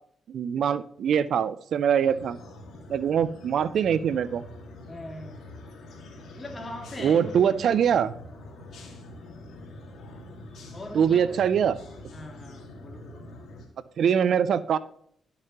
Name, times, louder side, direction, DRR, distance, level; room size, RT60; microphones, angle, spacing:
voice 1, 0.3-2.4 2.9-4.4 7.0-8.1 10.9-11.8 14.0-14.8, right 8 dB, 70° right, 17 dB, 0.4 m, -23 dB
sound 1, 2.0-13.7, left 2 dB, 70° left, 1.9 m, -45 dB
voice 2, 4.9-5.5 6.4-7.3 7.6-7.8 10.7-11.4 12.1-13.3, left 1 dB, 25° left, 3 dB, 2.0 m, -41 dB
11.5 x 6.6 x 2.9 m, 0.67 s
cardioid pair, 75°, 0 cm